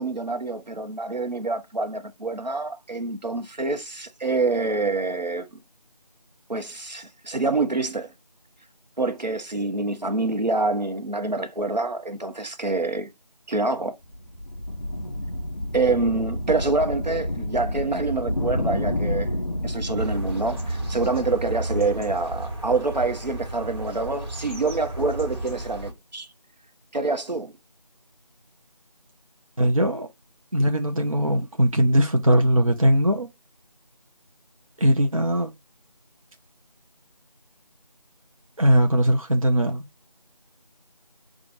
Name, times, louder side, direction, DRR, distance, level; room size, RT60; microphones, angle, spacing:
voice 1, 0.0-5.5 6.5-8.1 9.0-13.1 13.5-13.9 15.7-19.4 19.6-26.3 26.9-27.5, right 3 dB, 80° right, 0.9 m, -26 dB
sound 1, 14.0-22.5, left 1 dB, 45° left, 1.2 m, -30 dB
sound 2, 20.0-25.9, right 2 dB, 35° right, 1.4 m, -33 dB
voice 2, 29.6-30.1 30.5-33.3 34.8-35.5 38.6-39.9, equal, 55° right, 0.6 m, -20 dB
6.2 x 2.4 x 2.5 m
figure-of-eight pair, 175°, 21 cm